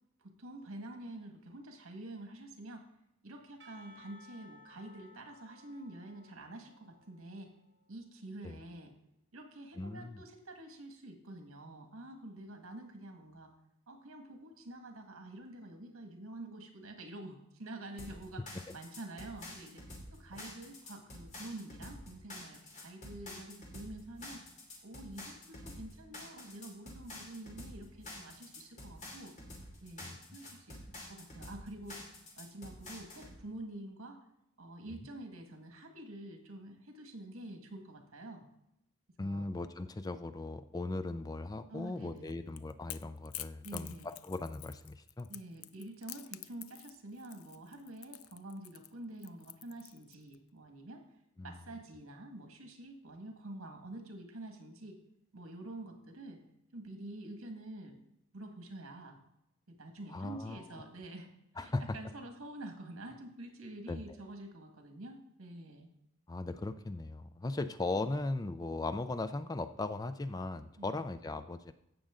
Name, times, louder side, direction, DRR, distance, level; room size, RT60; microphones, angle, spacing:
voice 1, 0.2-2.9 3.2-7.5 7.9-8.9 9.3-13.5 13.9-24.4 24.8-29.4 29.8-32.0 32.4-34.2 34.6-38.4 39.2-39.5 41.7-42.4 43.6-44.1 45.3-51.1 51.4-55.0 55.3-56.4 56.7-58.0 58.3-59.2 59.7-61.3 61.6-65.9 70.8-71.0, right 1 dB, 85° right, 5 dB, 1.7 m, -48 dB
Percussion / Church bell, 3.6-8.0, left 1 dB, 55° right, 0.9 m, -60 dB
voice 2, 9.8-10.2 30.0-30.2 39.2-45.3 51.4-51.6 60.1-60.6 61.6-62.0 63.9-64.0 66.3-71.7, left 2 dB, 15° left, 11 dB, 0.4 m, -38 dB
sound 1, 18.0-33.3, left 1 dB, 35° left, 2.8 m, -48 dB
Crackle / Crack, 42.2-50.3, left 15 dB, 85° left, 0.4 m, -48 dB
16.0 x 6.4 x 3.7 m, 0.82 s
head